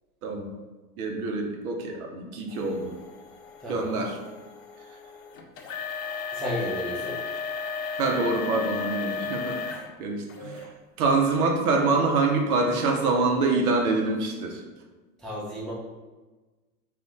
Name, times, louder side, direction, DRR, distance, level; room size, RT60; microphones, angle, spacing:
voice 1, 1.0-2.9 3.7-4.2 8.0-10.6 11.0-14.6, right 3 dB, 65° right, 2 dB, 0.8 m, -25 dB
sound 1, 2.5-9.9 10.3-10.7 11.3-11.4 12.1-12.2, left 5 dB, 60° left, 0.7 m, -35 dB
voice 2, 3.6-4.0 6.3-7.2 15.2-15.7, equal, ahead, -8 dB, 0.4 m, -32 dB
2.5 x 2.4 x 3.6 m, 1.2 s
hypercardioid pair, 95°, 48 cm